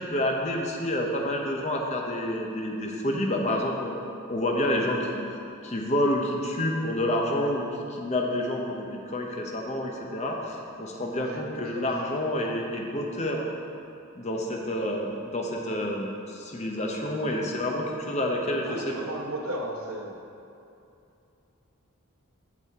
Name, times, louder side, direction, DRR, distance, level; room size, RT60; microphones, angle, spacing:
voice 1, 0.0-3.9 4.3-5.2 5.6-7.6 7.9-13.4 14.2-19.0, left 1 dB, 30° left, 0 dB, 0.7 m, -28 dB
voice 2, 18.6-20.1, right 1 dB, 85° right, 0 dB, 1.0 m, -34 dB
8.2 x 6.2 x 3.6 m, 2.7 s
head